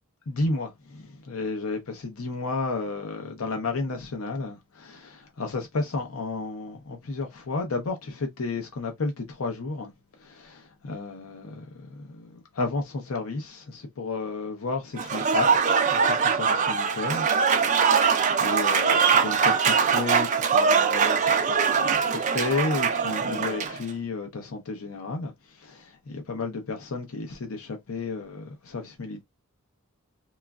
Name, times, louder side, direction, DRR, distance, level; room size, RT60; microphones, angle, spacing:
voice 1, 0.3-9.9 10.2-18.1 18.4-25.3 25.6-29.2, left 3 dB, 80° left, 0.6 m, -32 dB
Applause / Crowd, 15.0-23.8, right 6 dB, 35° right, 0.4 m, -22 dB
3.0 x 2.3 x 2.3 m
head